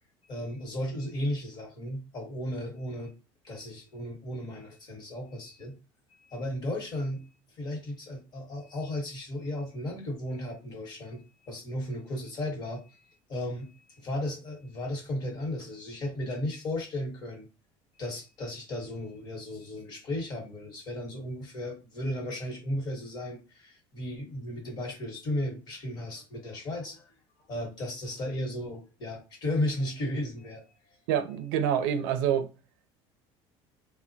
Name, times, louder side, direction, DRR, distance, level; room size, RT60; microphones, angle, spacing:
voice 1, 0.3-3.1 3.4-5.8 6.2-7.2 7.6-17.5 18.0-27.1 27.5-30.6, left 1 dB, 35° left, 1.1 m, -35 dB
voice 2, 31.1-32.5, right 9 dB, 85° right, 0.5 m, -26 dB
3.3 x 2.1 x 2.6 m
cardioid pair, 155°, 12 cm